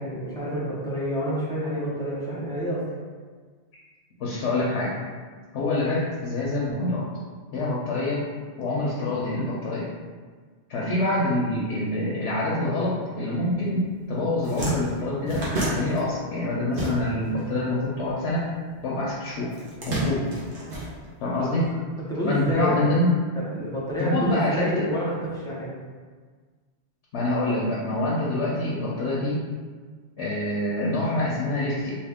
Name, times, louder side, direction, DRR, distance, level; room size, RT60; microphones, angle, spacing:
voice 1, 0.0-2.8 21.4-21.6 22.1-22.9 23.4-25.7, equal, 5° left, -8 dB, 0.8 m, -28 dB
voice 2, 4.2-5.0 5.5-7.0 7.5-8.2 8.6-9.8 10.7-18.4 18.8-19.5 19.8-20.3 21.2-21.7 22.2-23.1 24.0-24.8 27.1-29.4 30.2-32.0, left 1 dB, 90° left, -6 dB, 1.0 m, -26 dB
sound 1, 13.8-14.0 14.2-17.4 17.7-18.8 19.5-21.5, right 1 dB, 55° right, 1.0 m, -31 dB
2.9 x 2.8 x 3.5 m, 1.5 s
omnidirectional pair, 1.1 m